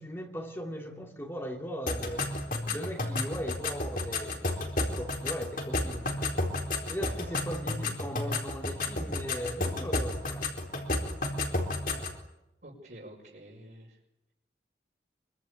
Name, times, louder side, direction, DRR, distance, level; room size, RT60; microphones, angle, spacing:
voice 1, 0.0-2.3 2.7-6.4 6.9-10.8 11.9-12.1, equal, 15° left, 2.8 m, -39 dB
sound 1, 1.9-12.2, left 2 dB, 50° left, 4.3 m, -32 dB
voice 2, 7.0-7.4 12.6-14.0, right 1 dB, 55° right, 5.7 m, -48 dB
25.0 x 24.5 x 8.5 m
head